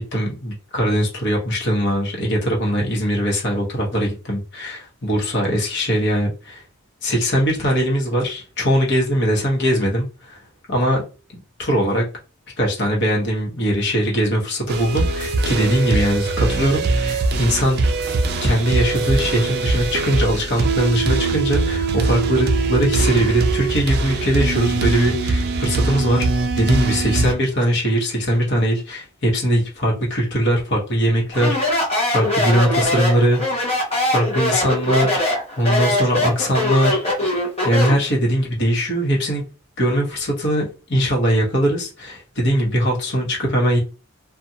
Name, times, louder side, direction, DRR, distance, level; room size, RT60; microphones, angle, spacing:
voice 1, 0.0-6.6 7.0-10.4 10.7-11.0 11.6-12.0 12.6-17.8 18.4-26.3 26.5-31.8 32.1-33.8 34.1-35.3 35.6-39.4 39.8-43.8, equal, 55° left, -2 dB, 1.0 m, -21 dB
sound 1, 14.7-27.3, right 3 dB, 45° right, 0.3 m, -21 dB
Speech, 31.3-38.1, left 1 dB, 30° left, 0.9 m, -21 dB
2.5 x 2.3 x 2.7 m, 0.33 s
head